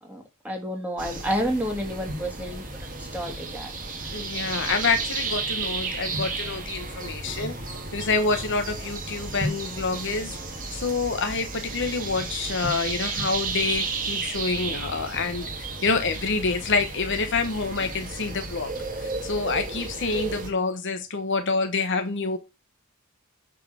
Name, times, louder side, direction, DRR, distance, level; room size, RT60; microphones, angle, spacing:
voice 1, 0.0-3.7, equal, 5° right, 3.1 m, -30 dB
sound 1, 1.0-20.5, right 3 dB, 40° right, 2.3 m, -33 dB
voice 2, 4.1-7.5 7.9-10.3 10.7-18.7 19.0-22.4, left 4 dB, 55° left, 1.2 m, -27 dB
9.0 x 4.8 x 6.2 m
head